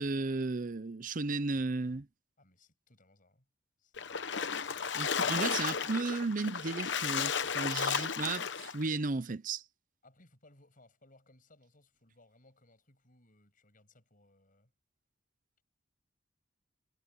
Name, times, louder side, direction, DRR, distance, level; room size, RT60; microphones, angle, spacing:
voice 1, 0.0-2.1 4.9-9.6, right 3 dB, 45° right, 0.7 m, -34 dB
voice 2, 2.4-3.5 3.8-5.4 10.0-14.7, left 2 dB, 45° left, 7.4 m, -64 dB
Splash splatter, 4.0-8.8, left 6 dB, 65° left, 1.0 m, -33 dB
head